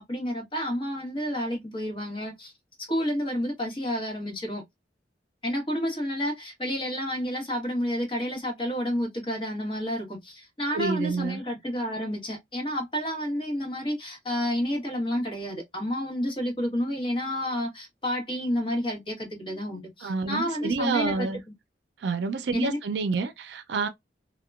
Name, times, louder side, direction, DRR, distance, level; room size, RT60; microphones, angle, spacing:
voice 1, 0.1-2.5 2.8-4.6 5.4-21.3 22.5-22.8, equal, 30° left, 1.1 m, -30 dB
voice 2, 10.7-11.4 20.0-21.4 22.0-23.9, right 4 dB, 75° right, 0.4 m, -28 dB
2.8 x 2.1 x 2.3 m
head